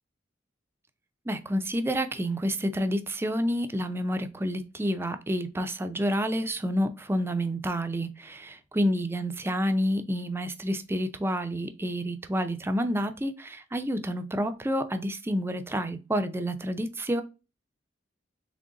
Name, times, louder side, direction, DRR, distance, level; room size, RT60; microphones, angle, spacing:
voice 1, 1.3-17.2, equal, 15° right, 0.4 m, -29 dB
3.7 x 3.5 x 3.8 m
head